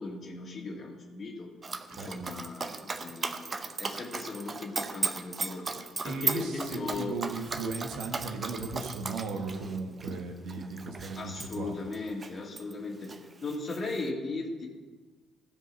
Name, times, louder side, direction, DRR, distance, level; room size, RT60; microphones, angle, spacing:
voice 1, 0.0-1.5 1.9-5.7 6.0-7.1 11.2-14.7, left 3 dB, 45° left, 0 dB, 2.3 m, -37 dB
Dog, 1.6-12.7 13.0-14.1, right 4 dB, 35° right, 0.8 m, -36 dB
voice 2, 1.9-2.3 6.0-11.8, right 3 dB, 65° right, 4 dB, 1.3 m, -36 dB
15.0 x 5.3 x 5.5 m, 1.3 s
figure-of-eight pair, 45°, 0 cm